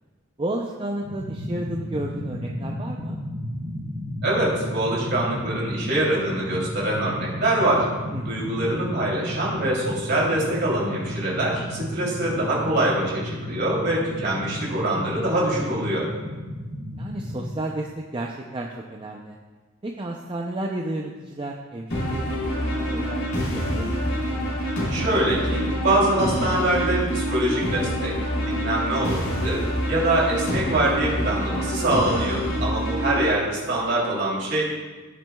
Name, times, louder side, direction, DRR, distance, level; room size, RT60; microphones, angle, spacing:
voice 1, 0.4-3.2 8.1-8.6 17.0-19.4 19.8-24.1, right 1 dB, 25° right, 0 dB, 0.4 m, -32 dB
sound 1, 1.0-17.5, equal, 90° right, 1.9 m, -33 dB
voice 2, 4.2-7.9 8.2-16.1 24.9-28.1 28.4-29.6 29.9-34.6, right 1 dB, 50° right, -5 dB, 3.0 m, -24 dB
sound 2, 21.9-33.3, equal, 70° left, 3.0 m, -26 dB
17.0 x 6.0 x 2.3 m, 1.3 s
head